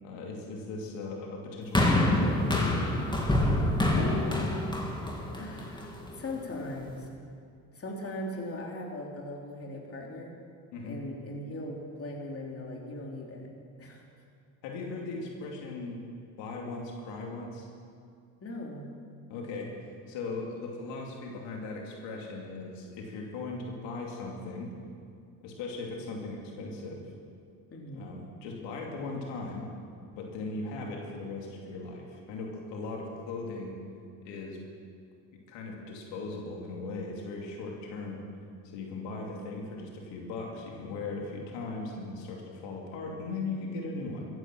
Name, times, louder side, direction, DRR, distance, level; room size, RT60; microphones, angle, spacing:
voice 1, 0.0-2.8 10.7-11.0 14.6-16.0 16.4-17.7 19.3-19.7 20.1-24.7 25.4-27.1 27.9-29.7 30.2-33.8 34.2-34.6 35.3-38.2 38.7-44.3, left 3 dB, 80° left, -1 dB, 2.6 m, -38 dB
sound 1, 1.7-6.1 6.9-7.0, left 1 dB, 10° left, 2.7 m, -26 dB
voice 2, 4.0-4.5 5.3-7.0 7.7-10.3 10.8-13.5 13.8-14.0 18.4-18.9 27.7-28.1, left 1 dB, 30° left, -1 dB, 3.3 m, -39 dB
14.5 x 11.0 x 7.4 m, 2.3 s
supercardioid pair, 85°, 43 cm